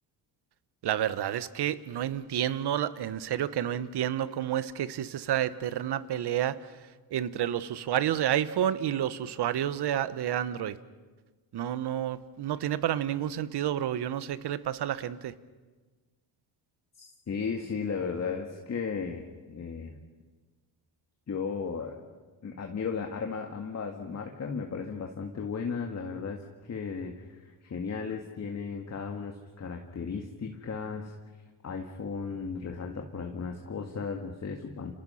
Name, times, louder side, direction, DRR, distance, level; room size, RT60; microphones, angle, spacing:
voice 1, 0.8-6.6 7.1-10.8 11.5-15.3, right 11 dB, 60° right, 14 dB, 1.3 m, -30 dB
voice 2, 17.0-19.2 19.5-20.0 21.3-22.0 22.4-31.1 31.6-35.0, left 5 dB, 35° left, 3 dB, 2.1 m, -35 dB
29.5 x 27.0 x 5.8 m, 1.3 s
cardioid pair, 100°, 46 cm